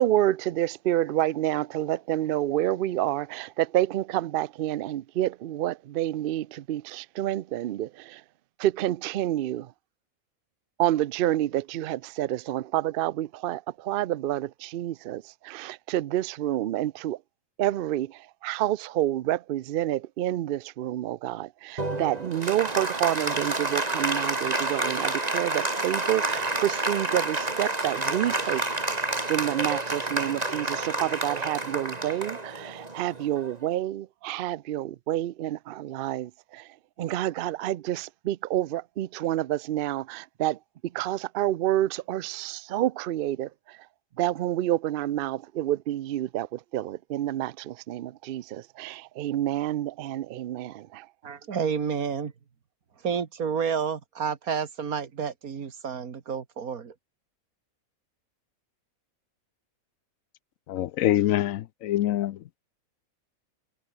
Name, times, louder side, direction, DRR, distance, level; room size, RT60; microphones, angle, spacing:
voice 1, 0.0-8.2 8.6-9.7 10.8-17.2 17.6-28.7 29.3-36.7 37.0-40.6 40.9-43.8 44.2-51.1, right 13 dB, 65° right, 0.5 m, -28 dB
Applause, 21.8-33.7, right 2 dB, 30° right, 2.6 m, -29 dB
voice 2, 51.2-52.3 53.0-56.9, right 6 dB, 90° right, 2.1 m, -30 dB
voice 3, 60.7-62.4, left 13 dB, 75° left, 1.0 m, -25 dB
omnidirectional pair, 1.5 m